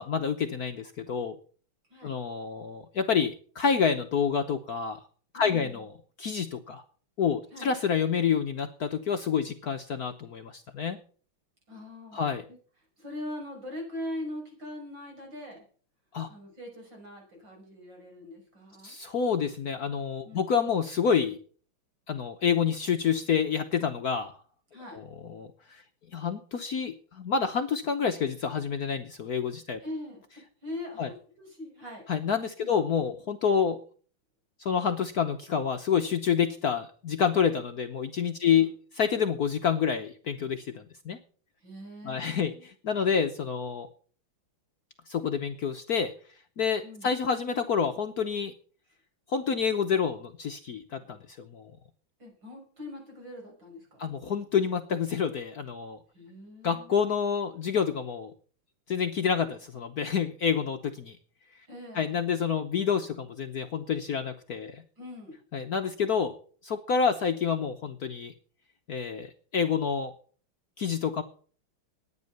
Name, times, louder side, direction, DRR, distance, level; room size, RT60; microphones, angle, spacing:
voice 1, 0.0-1.4 2.0-5.0 5.3-5.9 6.2-6.8 7.2-11.0 12.1-12.4 16.1-16.3 18.8-21.4 22.1-24.3 24.9-25.8 26.1-29.8 31.0-31.1 32.1-33.8 34.6-38.7 39.0-41.2 42.0-43.9 45.1-46.1 46.6-48.5 49.3-51.7 54.0-56.0 56.6-58.3 58.9-61.2 61.9-64.8 65.5-66.4 66.6-68.3 68.9-70.1 70.8-71.2, left 7 dB, 55° left, 6 dB, 1.2 m, -28 dB
voice 2, 5.3-5.8 7.5-7.7 11.7-12.2 13.0-15.6 16.3-18.9 20.2-20.5 24.7-25.0 29.8-32.0 32.6-32.8 38.4-38.7 41.6-42.7 46.8-47.1 52.2-54.1 56.1-57.1 61.7-62.1 65.0-65.4, left 1 dB, 60° right, 1 dB, 6.5 m, -42 dB
12.5 x 9.8 x 6.7 m, 0.43 s
omnidirectional pair, 2.3 m